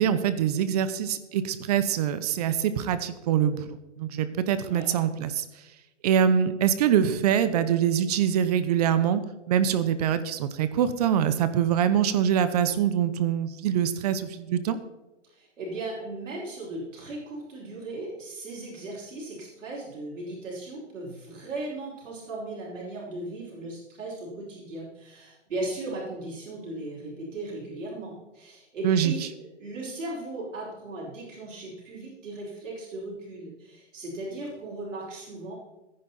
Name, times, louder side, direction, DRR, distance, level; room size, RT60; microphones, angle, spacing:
voice 1, 0.0-5.4 6.0-9.2 9.5-14.8 28.8-29.1, right 9 dB, 35° right, 13 dB, 0.8 m, -24 dB
voice 2, 15.2-29.2 29.6-35.5, right 2 dB, 85° right, -4 dB, 5.5 m, -37 dB
14.5 x 10.5 x 4.3 m, 1.0 s
hypercardioid pair, 155°, 37 cm